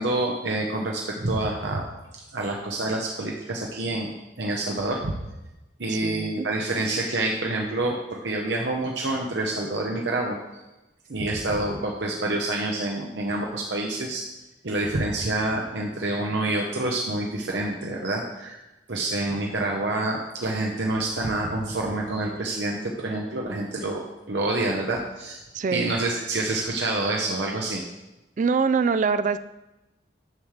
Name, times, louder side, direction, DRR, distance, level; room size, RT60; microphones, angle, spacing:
voice 1, 0.0-1.9 2.1-5.1 5.8-10.6 11.1-14.2 14.6-18.6 18.9-25.4 25.7-27.8, right 2 dB, 75° right, 0 dB, 0.9 m, -27 dB
voice 2, 6.0-6.5 25.5-25.9 28.4-29.4, right 5 dB, 45° right, 12 dB, 0.3 m, -24 dB
11.0 x 7.2 x 3.3 m, 1.0 s
head